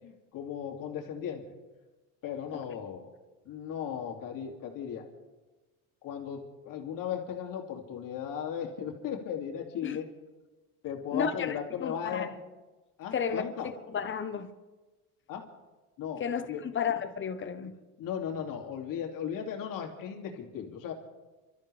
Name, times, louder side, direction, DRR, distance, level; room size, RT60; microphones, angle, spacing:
voice 1, 0.0-1.4 2.2-3.1 3.4-5.0 6.0-10.1 10.8-12.3 13.0-13.7 15.3-15.5 16.0-16.2 16.5-16.6 17.6-17.7 18.0-20.9, left 8 dB, 55° left, 2.7 m, -36 dB
voice 2, 11.1-12.3 13.1-13.5 13.9-14.5 16.2-17.7, left 7 dB, 30° left, 1.2 m, -33 dB
29.5 x 13.0 x 3.5 m
cardioid pair, 120°, 39 cm